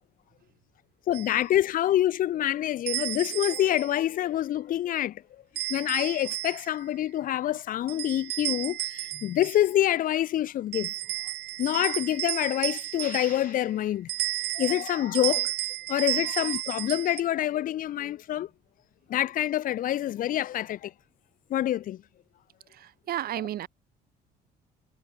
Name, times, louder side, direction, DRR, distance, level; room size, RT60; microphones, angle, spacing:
voice 1, 1.1-5.2 5.7-10.9 11.6-14.1 14.5-15.5 15.9-18.5 19.1-20.9 21.5-22.0, left 12 dB, 55° left, 0.6 m, -26 dB
sound 1, 1.1-1.4 2.9-3.9 5.6-6.8 7.9-9.7 10.7-13.6 14.1-17.2, right 17 dB, 80° right, 3.2 m, -32 dB
voice 2, 22.7-23.7, right 12 dB, 65° right, 3.0 m, -33 dB
cardioid pair, 110°, 17 cm